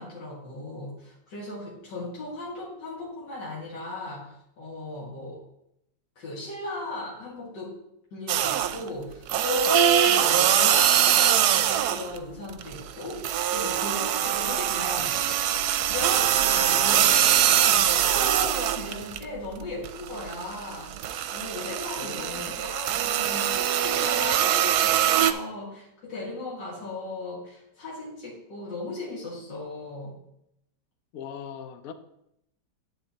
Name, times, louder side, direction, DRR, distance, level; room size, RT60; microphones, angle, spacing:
voice 1, 0.0-5.4 6.2-7.8 8.1-15.3 15.9-17.2 17.5-30.2, left 2 dB, 85° left, 2.3 m, -36 dB
sound 1, 8.3-8.9 9.3-12.2 12.5-19.2 19.6-25.3, right 10 dB, 75° right, 1.1 m, -23 dB
voice 2, 16.7-17.6 22.0-22.6 31.1-31.9, left 8 dB, 65° left, 1.0 m, -40 dB
10.5 x 8.6 x 2.8 m
omnidirectional pair, 1.9 m